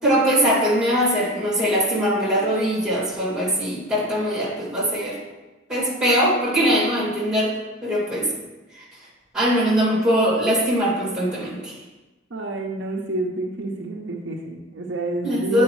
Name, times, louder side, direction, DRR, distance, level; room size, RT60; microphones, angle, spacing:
voice 1, 0.0-5.2 5.7-7.6 7.8-8.3 8.7-8.9 9.3-11.7 15.2-15.6, equal, 5° right, -7 dB, 2.4 m, -21 dB
voice 2, 12.3-15.6, right 2 dB, 70° right, 1 dB, 0.7 m, -29 dB
9.6 x 4.7 x 3.1 m, 1.1 s
head